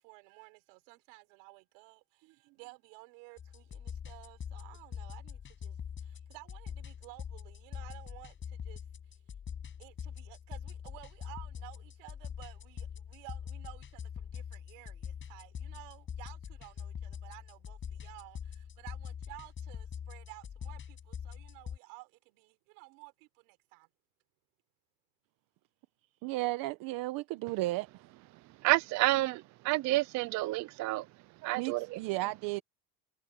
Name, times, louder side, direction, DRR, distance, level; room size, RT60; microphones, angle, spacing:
voice 1, 0.0-9.2 9.8-23.9, right 30 dB, 90° right, 5.0 m, -54 dB
sound 1, 3.4-21.8, left 8 dB, 30° left, 8.0 m, -44 dB
voice 2, 26.2-27.9 31.6-32.6, right 19 dB, 65° right, 1.0 m, -34 dB
voice 3, 28.6-31.1 31.4-32.0, right 19 dB, 50° right, 0.5 m, -29 dB
cardioid pair, 135°, 37 cm